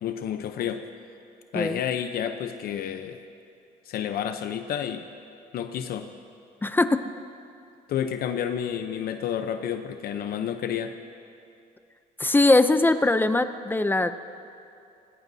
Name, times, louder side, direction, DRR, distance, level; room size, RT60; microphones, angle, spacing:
voice 1, 0.0-0.9 1.5-3.2 3.9-5.1 5.5-6.1 7.9-10.9, left 9 dB, 65° left, 7 dB, 0.8 m, -30 dB
voice 2, 6.6-7.0 12.2-14.1, left 2 dB, 10° left, 10 dB, 0.5 m, -21 dB
25.5 x 20.0 x 2.8 m, 2.6 s
cardioid pair, 110°, 17 cm